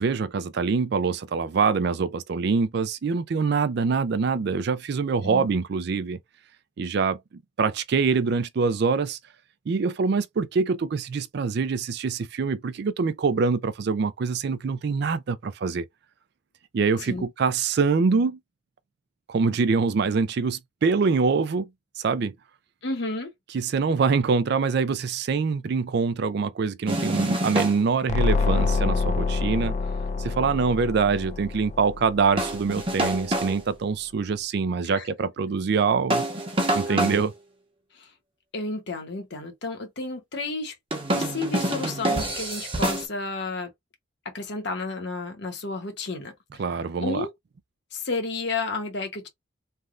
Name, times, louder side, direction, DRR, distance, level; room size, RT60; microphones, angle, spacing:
voice 1, 0.0-6.2 6.8-9.2 9.7-15.9 16.7-18.4 19.3-21.7 22.0-22.3 23.5-29.7 30.2-36.2 36.7-37.3 46.6-47.3, right 5 dB, 55° right, 0.4 m, -24 dB
voice 2, 22.8-23.3 34.8-35.1 36.9-37.2 37.9-38.1 38.5-40.7 41.1-43.7 44.2-46.3 47.0-47.3 47.9-49.3, left 3 dB, 60° left, 1.0 m, -31 dB
sound 1, 26.9-27.8 32.4-33.6 36.1-37.3 40.9-43.1, right 1 dB, 30° right, 1.0 m, -26 dB
sound 2, 28.1-32.8, left 4 dB, 35° left, 0.3 m, -26 dB
3.3 x 2.3 x 2.5 m
head